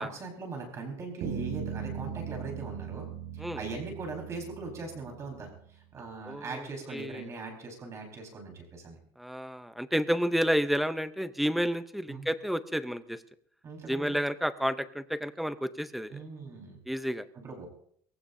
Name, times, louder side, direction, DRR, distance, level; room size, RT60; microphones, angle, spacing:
voice 1, 0.0-9.0 12.1-12.3 13.6-14.2 16.1-16.8 17.3-17.7, right 3 dB, 25° right, 2 dB, 4.2 m, -40 dB
sound 1, 1.2-5.6, right 8 dB, 55° right, 7.0 m, -39 dB
voice 2, 6.3-6.7 6.9-7.2 9.2-13.2 13.9-16.1 16.9-17.3, equal, ahead, 13 dB, 0.5 m, -30 dB
23.5 x 15.5 x 2.6 m, 0.62 s
cardioid pair, 175°, 12 cm